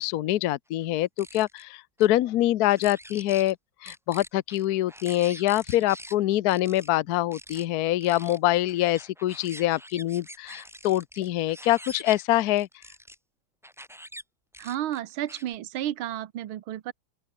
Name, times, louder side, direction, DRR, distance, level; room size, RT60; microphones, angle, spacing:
voice 1, 0.0-3.6 3.8-12.7, left 14 dB, 75° left, 0.8 m, -25 dB
sound 1, 1.0-1.6 2.0-2.1 2.6-3.5 3.8-6.1 6.5-6.9 7.3-7.6 8.0-13.1 13.6-14.2 14.5-15.5, equal, ahead, 2.9 m, -45 dB
voice 2, 14.6-16.9, right 12 dB, 70° right, 1.9 m, -32 dB
open air
omnidirectional pair, 2.3 m